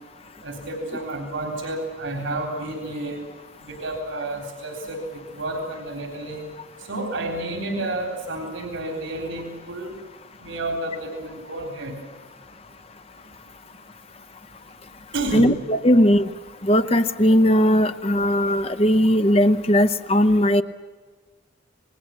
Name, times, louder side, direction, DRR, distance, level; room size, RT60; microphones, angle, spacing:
voice 1, 0.4-3.2 3.7-5.0 5.4-6.4 6.8-9.9 10.4-12.0 15.1-15.6, right 2 dB, 85° right, 2 dB, 3.7 m, -30 dB
voice 2, 15.3-16.3 16.6-20.6, equal, 30° left, 9 dB, 0.8 m, -18 dB
28.0 x 20.0 x 7.6 m, 1.4 s
head